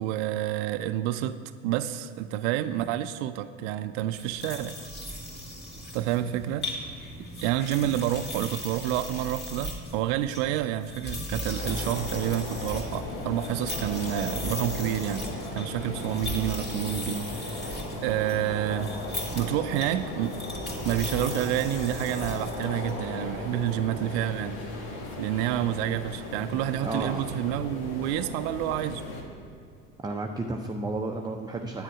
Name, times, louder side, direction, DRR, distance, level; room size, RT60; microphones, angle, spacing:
voice 1, 0.0-4.8 5.9-6.7 7.2-18.9 19.3-20.4 20.8-24.6 25.2-29.0, right 12 dB, 60° right, 10 dB, 0.5 m, -29 dB
sound 1, 4.1-23.0, left 1 dB, 25° left, 2.0 m, -38 dB
sound 2, 11.6-29.2, left 2 dB, 65° left, 1.8 m, -37 dB
voice 2, 26.8-27.4 30.0-31.8, right 2 dB, 10° right, 2 dB, 0.5 m, -32 dB
9.9 x 8.6 x 4.8 m, 2.5 s
hypercardioid pair, 70°, 40 cm